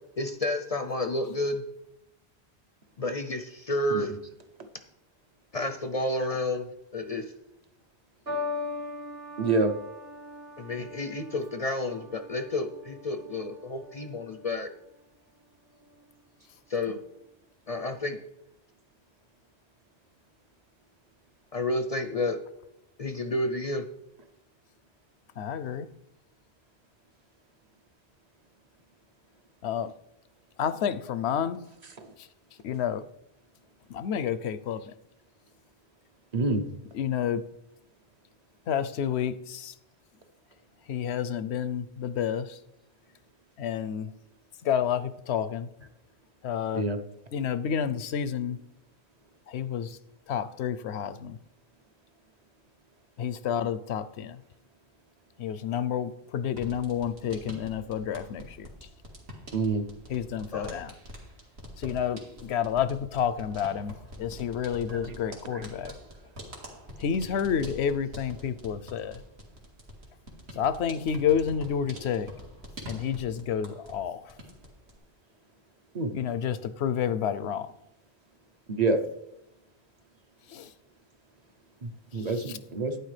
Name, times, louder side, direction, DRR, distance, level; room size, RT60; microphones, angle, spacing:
voice 1, 0.2-1.6 3.0-4.1 5.5-6.7 6.9-7.3 10.6-14.7 16.7-17.0 17.7-18.2 21.5-22.4 23.0-23.8 60.5-60.8, left 2 dB, 45° left, 8 dB, 0.5 m, -30 dB
sound 1, 8.3-14.8 15.6-16.0, left 3 dB, 65° right, 3.4 m, -40 dB
voice 2, 9.4-9.7 36.3-36.7 46.7-47.0 59.5-59.8 65.5-65.6 75.9-76.1 78.7-79.0 81.8-83.0, right 3 dB, 45° right, 8 dB, 0.8 m, -26 dB
voice 3, 25.4-25.9 29.6-29.9 30.6-31.6 32.6-33.0 33.9-34.9 36.9-37.5 38.7-39.7 40.9-42.6 43.6-44.1 44.6-45.7 46.4-46.9 47.3-48.6 49.5-50.0 50.3-51.4 53.2-54.4 55.4-58.7 60.1-60.9 61.8-66.0 67.0-69.2 70.6-72.3 72.9-74.3 76.1-77.7 80.5-80.7 82.3-82.6, left 8 dB, 85° left, 14 dB, 0.9 m, -30 dB
sound 2, 56.5-74.0 74.3-75.0, equal, 80° right, 2.1 m, -45 dB
11.0 x 9.4 x 3.3 m, 0.83 s
omnidirectional pair, 1.1 m